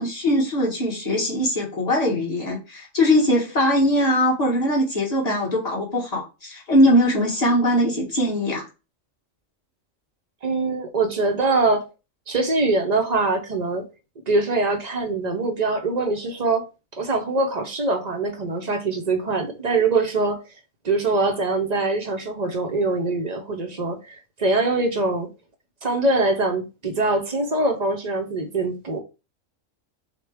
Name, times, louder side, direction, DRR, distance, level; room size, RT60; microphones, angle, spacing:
voice 1, 0.0-8.7, left 1 dB, 30° left, 1.7 m, -21 dB
voice 2, 10.4-11.9 12.3-13.8 14.3-16.6 17.0-20.4 20.8-25.3 25.8-29.0, right 3 dB, 45° right, 0.6 m, -23 dB
6.4 x 2.2 x 3.4 m
omnidirectional pair, 1.4 m